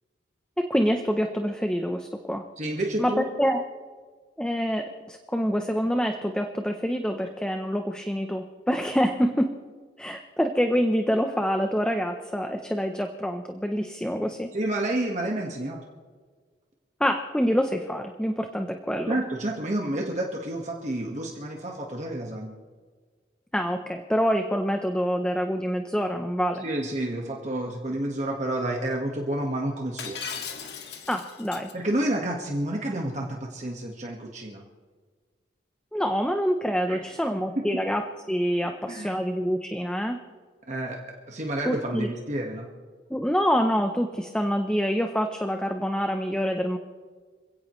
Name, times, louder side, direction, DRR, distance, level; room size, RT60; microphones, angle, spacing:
voice 1, 0.6-2.4 3.0-3.6 4.4-9.5 10.0-14.5 17.0-19.2 23.5-26.6 31.1-31.7 35.9-40.2 41.7-42.1 43.1-46.8, equal, 5° left, 5 dB, 0.7 m, -26 dB
voice 2, 2.6-3.3 14.5-15.8 19.1-22.5 26.6-30.2 31.7-34.6 36.9-37.0 37.5-37.6 38.9-39.1 40.7-42.7, right 1 dB, 40° right, 0 dB, 1.6 m, -29 dB
Shatter, 30.0-31.7, left 6 dB, 60° left, 1.9 m, -37 dB
27.0 x 17.0 x 3.2 m, 1.5 s
head